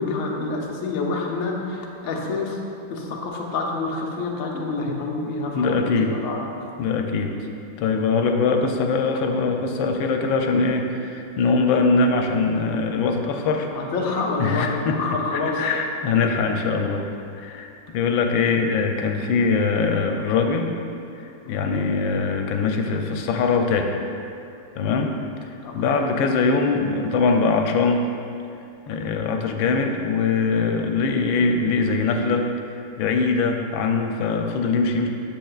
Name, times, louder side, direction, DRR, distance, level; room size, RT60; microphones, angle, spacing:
voice 1, 0.0-2.6 2.9-5.7 6.0-6.4 13.7-15.6 21.4-21.9 25.0-25.1 25.6-26.2 30.8-30.9, left 3 dB, 60° left, -1 dB, 1.0 m, -28 dB
voice 2, 4.5-5.3 5.5-6.2 6.8-7.3 7.8-13.7 14.4-17.1 17.3-20.7 21.2-23.9 24.8-25.1 25.7-28.1 28.9-32.5 33.0-35.1, left 4 dB, 90° left, 4 dB, 1.4 m, -22 dB
7.5 x 6.8 x 2.3 m, 2.6 s
omnidirectional pair, 2.1 m